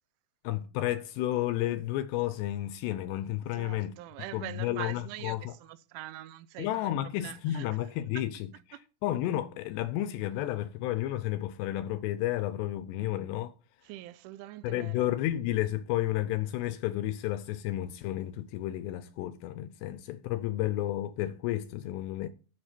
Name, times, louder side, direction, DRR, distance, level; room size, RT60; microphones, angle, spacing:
voice 1, 0.4-3.9 4.3-5.5 6.6-13.5 14.6-22.3, left 14 dB, 80° left, 2.5 m, -32 dB
voice 2, 3.5-6.9 7.2-7.7 8.7-8.8 13.8-15.1, right 15 dB, 90° right, 3.1 m, -43 dB
11.5 x 7.4 x 4.4 m
omnidirectional pair, 5.4 m